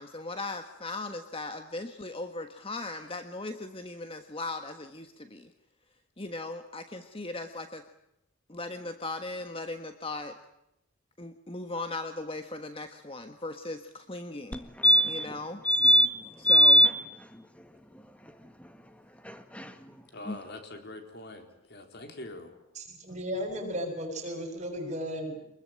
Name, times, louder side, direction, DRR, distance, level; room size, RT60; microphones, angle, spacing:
voice 1, 0.0-5.5 6.2-7.8 8.5-10.3 11.2-14.6 15.1-15.6 16.4-16.9 20.2-20.4, left 2 dB, 25° left, 7 dB, 1.4 m, -38 dB
sound 1, 14.5-14.6 14.8-15.3 15.6-16.1 16.4-16.9 19.3-19.4 19.6-19.7, equal, 5° left, 1.6 m, -19 dB
voice 2, 20.1-22.6, left 2 dB, 50° left, 6 dB, 4.0 m, -44 dB
voice 3, 22.7-25.4, equal, 35° right, 2 dB, 7.6 m, -35 dB
27.0 x 21.5 x 8.9 m, 0.84 s
head